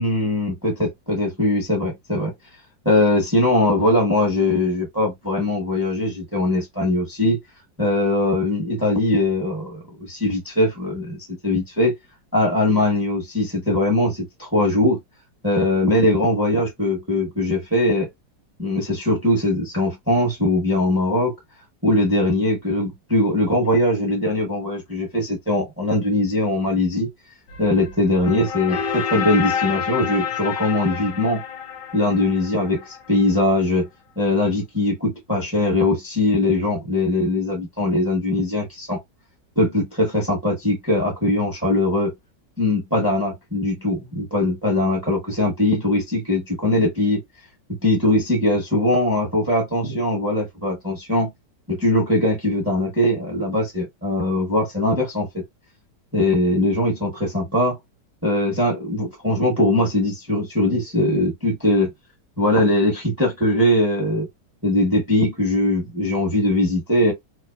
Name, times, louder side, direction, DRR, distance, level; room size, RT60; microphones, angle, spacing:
voice 1, 0.0-2.3 2.8-7.4 7.8-11.9 12.3-15.0 15.4-18.1 18.6-21.3 21.8-27.1 27.6-31.4 31.9-33.9 34.2-39.0 39.6-42.1 42.6-47.2 47.7-51.3 51.7-55.4 56.1-57.8 58.2-61.9 62.4-64.3 64.6-67.1, left 1 dB, 10° right, 0.8 m, -21 dB
sound 1, 27.5-33.4, left 7 dB, 85° left, 1.4 m, -29 dB
3.0 x 2.2 x 2.3 m
omnidirectional pair, 1.9 m